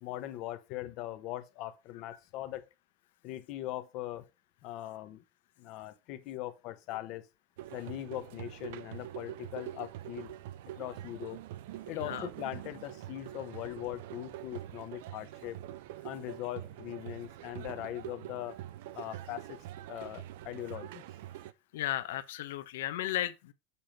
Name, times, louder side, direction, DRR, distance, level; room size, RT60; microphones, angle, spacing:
voice 1, 0.0-2.7 3.2-4.3 4.6-5.2 5.6-7.2 7.7-10.3 10.8-11.4 11.9-15.6 16.0-18.6 18.9-19.6 19.9-21.0, left 14 dB, 40° left, 0.9 m, -40 dB
sound 1, 7.6-21.5, right 13 dB, 65° right, 0.5 m, -45 dB
voice 2, 11.9-12.3 21.7-23.5, left 13 dB, 75° left, 0.9 m, -35 dB
7.0 x 4.5 x 5.1 m
supercardioid pair, 175°, 0 cm